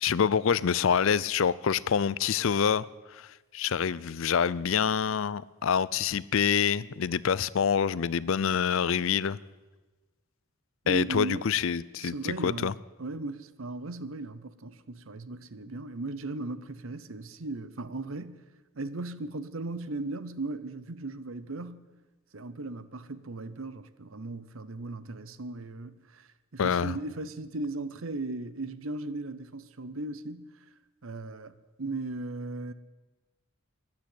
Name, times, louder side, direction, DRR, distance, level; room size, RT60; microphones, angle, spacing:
voice 1, 0.0-2.9 3.1-3.3 3.5-9.4 10.9-12.7 26.6-27.0, left 7 dB, 65° left, 0.4 m, -26 dB
voice 2, 10.8-11.5 12.0-12.7 13.0-18.4 18.8-21.8 22.3-30.5 31.0-32.7, right 2 dB, 65° right, 0.8 m, -37 dB
14.0 x 10.5 x 8.5 m
head